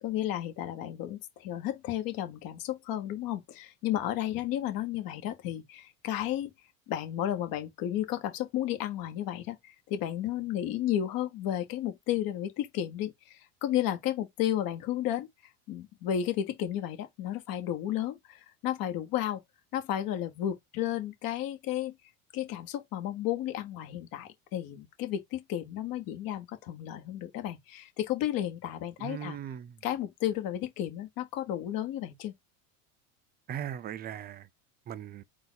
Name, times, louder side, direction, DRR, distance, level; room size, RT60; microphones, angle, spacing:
voice 1, 0.0-6.5 6.9-15.3 15.7-19.4 19.7-22.0 22.3-29.4 29.8-32.3, left 11 dB, 55° left, 1.4 m, -33 dB
voice 2, 29.0-29.8 33.5-34.5 34.9-35.2, right 9 dB, 25° right, 0.4 m, -38 dB
4.0 x 2.5 x 3.9 m
supercardioid pair, 105°, 42 cm